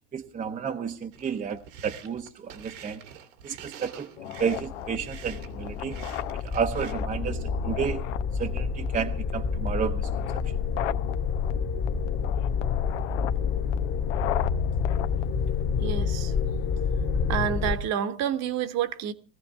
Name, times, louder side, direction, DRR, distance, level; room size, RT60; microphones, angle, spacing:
voice 1, 0.1-3.0 3.4-4.1 4.4-6.0 6.4-8.0 8.4-10.1, right 7 dB, 20° right, 0.9 m, -31 dB
sound 1, 1.1-6.9, right 8 dB, 85° right, 2.5 m, -46 dB
sound 2, 4.2-16.2, left 13 dB, 80° left, 0.9 m, -38 dB
sound 3, 4.4-17.8, left 6 dB, 35° left, 1.5 m, -28 dB
voice 2, 15.8-16.3 16.7-16.8 17.3-19.1, right 9 dB, 45° right, 1.3 m, -29 dB
19.0 x 14.5 x 3.6 m
supercardioid pair, 110°, 36 cm